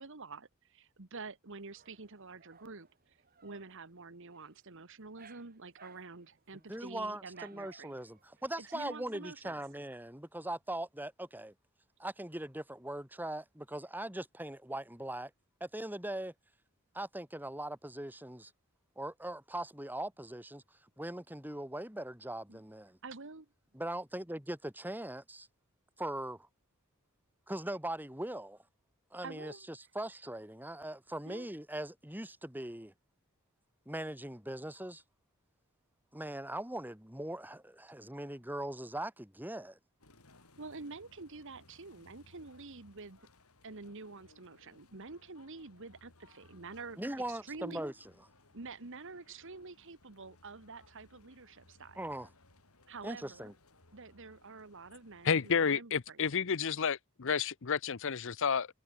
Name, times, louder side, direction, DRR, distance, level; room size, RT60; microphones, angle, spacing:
voice 1, 0.0-3.2 3.4-7.9 8.6-9.6 22.5-22.6 23.0-23.5 29.2-29.7 31.3-31.5 40.6-43.2 43.6-47.0 47.3-47.8 48.5-52.1 52.9-53.5 53.9-56.4, right 3 dB, 60° right, 1.5 m, -48 dB
Dog, 1.6-9.8, right 5 dB, 45° right, 5.4 m, -61 dB
voice 2, 6.7-11.5 12.0-15.3 15.6-16.3 16.9-18.5 18.9-20.6 21.0-23.0 23.7-25.5 26.0-26.5 27.5-28.6 29.1-32.9 33.8-35.0 36.1-39.8 47.0-47.9 52.0-52.3 53.0-53.5, right 1 dB, 10° right, 3.4 m, -40 dB
sound 1, 40.0-55.8, left 2 dB, 80° left, 4.5 m, -63 dB
voice 3, 55.2-58.7, left 6 dB, 60° left, 0.8 m, -31 dB
head